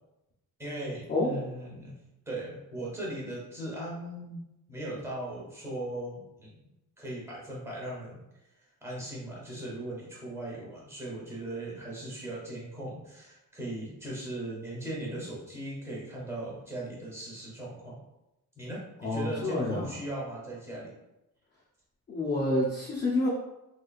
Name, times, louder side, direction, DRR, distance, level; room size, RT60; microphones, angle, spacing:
voice 1, 0.6-2.0 2.3-4.4 4.7-6.6 7.0-8.2 8.8-18.0 18.6-20.9, right 1 dB, 10° right, -6 dB, 0.9 m, -38 dB
voice 2, 19.0-19.9 22.1-23.3, left 2 dB, 30° left, -5 dB, 0.5 m, -28 dB
3.2 x 3.0 x 2.4 m, 0.94 s
wide cardioid pair, 165°, 35 cm